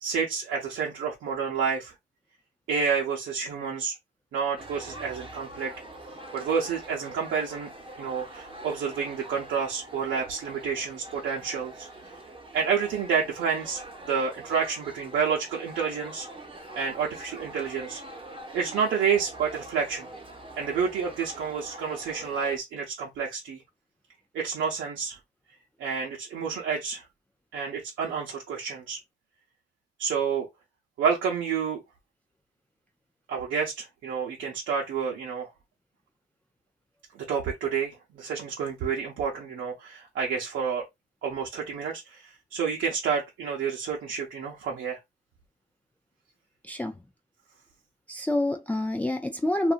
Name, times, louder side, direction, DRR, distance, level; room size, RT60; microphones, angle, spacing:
voice 1, 0.0-1.9 2.7-4.0 4.3-5.7 6.3-7.7 8.0-11.9 12.5-16.3 16.7-18.0 18.5-20.1 20.6-23.6 24.3-25.2 25.8-27.0 27.5-29.0 30.0-30.5 31.0-31.8 33.3-35.5 37.3-40.8 41.2-45.0, right 6 dB, 75° right, 0.8 m, -29 dB
sound 1, 4.6-22.6, right 1 dB, 25° right, 0.8 m, -44 dB
voice 2, 46.6-47.0 48.1-49.7, left 1 dB, 5° left, 0.3 m, -27 dB
2.7 x 2.4 x 2.5 m
cardioid pair, 90°, 20 cm